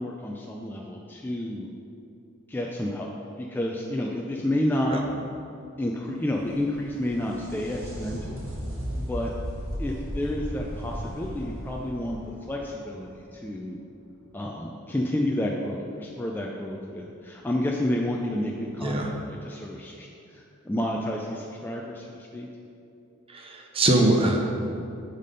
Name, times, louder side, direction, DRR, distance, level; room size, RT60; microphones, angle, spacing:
voice 1, 0.0-1.7 2.5-3.1 3.4-5.0 5.8-8.5 8.9-9.3 9.8-12.2 12.5-13.8 14.3-22.5, left 1 dB, 10° left, -1 dB, 0.3 m, -30 dB
sound 1, 6.0-13.6 17.0-17.1 18.1-18.2, equal, 70° right, 1.7 m, -36 dB
voice 2, 18.8-19.1 23.3-24.4, right 2 dB, 25° right, 2 dB, 0.7 m, -23 dB
8.7 x 4.2 x 5.2 m, 2.7 s
head